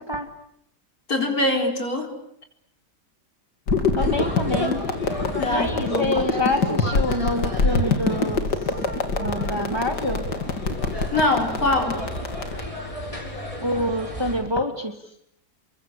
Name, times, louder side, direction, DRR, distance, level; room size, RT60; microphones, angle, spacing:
voice 1, 1.1-2.2 5.4-6.2 11.1-12.1, left 2 dB, 60° left, 3 dB, 4.8 m, -23 dB
sound 1, 3.7-12.6, left 3 dB, 80° left, 3.1 m, -25 dB
voice 2, 3.9-4.8 5.5-8.5 9.2-10.2 13.6-14.9, left 1 dB, 15° right, 5 dB, 2.3 m, -26 dB
sound 2, 4.0-14.4, equal, 20° left, 7.4 m, -34 dB
29.5 x 23.5 x 8.4 m, 0.73 s
omnidirectional pair, 1.8 m